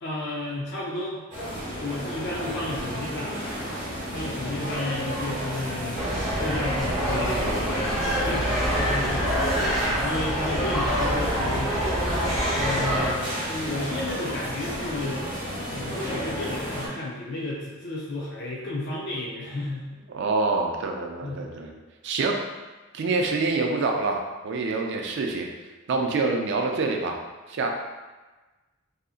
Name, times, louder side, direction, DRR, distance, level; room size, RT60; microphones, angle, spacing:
voice 1, 0.0-1.2 1.6-3.3 4.1-7.9 8.3-9.3 10.0-11.8 12.5-15.2 15.6-19.9 21.2-21.4, left 2 dB, 55° left, -4 dB, 0.4 m, -32 dB
sound 1, 1.3-16.9, equal, 35° right, 0.8 m, -33 dB
sound 2, 5.9-13.1, equal, ahead, 0.8 m, -26 dB
voice 2, 20.1-21.8 22.0-22.4 22.9-25.5 25.9-27.2 27.5-27.7, right 3 dB, 55° right, 2 dB, 0.4 m, -26 dB
2.7 x 2.5 x 2.4 m, 1.2 s
head